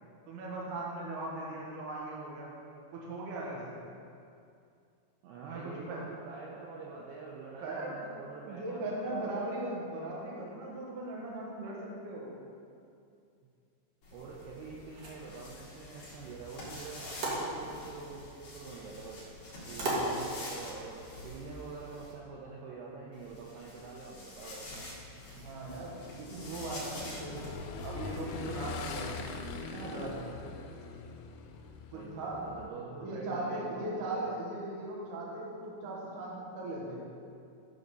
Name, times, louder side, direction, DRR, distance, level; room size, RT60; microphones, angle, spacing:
voice 1, 0.3-2.5 2.9-3.8 5.4-6.1 7.6-8.1 8.4-12.3 19.7-20.1 25.3-27.5 27.8-29.3 29.6-30.3 31.9-32.4 33.0-37.0, right 2 dB, 60° right, -4 dB, 2.4 m, -39 dB
voice 2, 5.2-9.5 14.1-19.2 19.7-24.6 31.9-34.2, right 4 dB, 90° right, -3 dB, 2.3 m, -45 dB
sound 1, 14.0-22.1 23.1-29.6, left 1 dB, 45° left, 2.8 m, -47 dB
sound 2, 14.8-20.7, right 1 dB, 75° right, 1.5 m, -39 dB
Motorcycle / Engine, 25.7-32.7, left 4 dB, 90° left, 3.2 m, -42 dB
11.5 x 4.0 x 6.5 m, 2.5 s
omnidirectional pair, 5.7 m